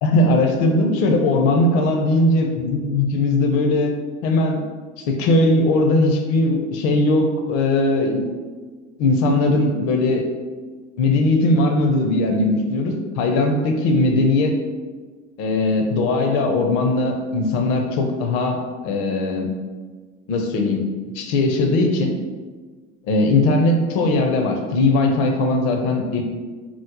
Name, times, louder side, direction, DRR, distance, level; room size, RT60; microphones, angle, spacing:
voice 1, 0.0-3.9 4.2-4.6 5.0-8.3 9.0-10.2 11.0-14.6 15.4-18.6 18.8-19.5 20.3-20.8 21.1-22.2 23.1-26.2, left 2 dB, 65° left, 3 dB, 0.6 m, -19 dB
3.0 x 2.0 x 3.8 m, 1.4 s
hypercardioid pair, 80°, 37 cm